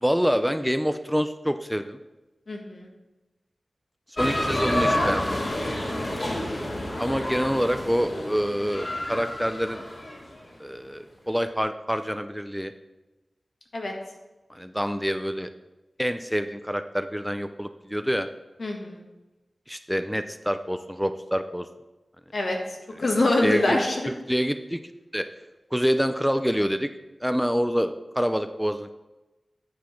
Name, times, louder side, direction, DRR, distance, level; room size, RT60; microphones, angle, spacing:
voice 1, 0.0-2.0 4.2-5.5 7.0-9.8 10.6-12.7 14.5-15.5 16.0-18.3 19.7-21.7 23.4-24.8 25.1-25.3 25.7-26.9 27.2-28.9, equal, ahead, 9 dB, 0.5 m, -26 dB
voice 2, 2.5-2.9 6.2-6.7 13.7-13.9 18.6-19.0 22.3-22.6 23.0-24.1, left 2 dB, 70° left, 1 dB, 1.7 m, -25 dB
sound 1, 4.2-10.2, left 1 dB, 55° left, 2.2 m, -29 dB
9.3 x 4.8 x 5.9 m, 1.1 s
wide cardioid pair, 55°, 0 cm